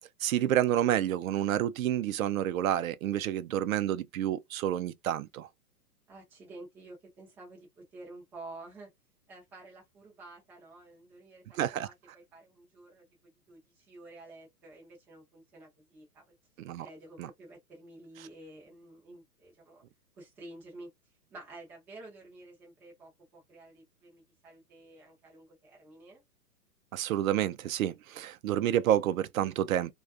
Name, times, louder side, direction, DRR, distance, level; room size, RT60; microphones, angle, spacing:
voice 1, 0.2-5.5 11.6-11.9 16.6-16.9 17.2-17.3 26.9-29.9, right 11 dB, 60° right, 0.5 m, -29 dB
voice 2, 6.1-8.9 9.3-16.4 16.8-19.8 20.2-20.9 21.3-26.2, right 2 dB, 5° right, 0.3 m, -51 dB
2.4 x 2.3 x 2.3 m
hypercardioid pair, 125°, 47 cm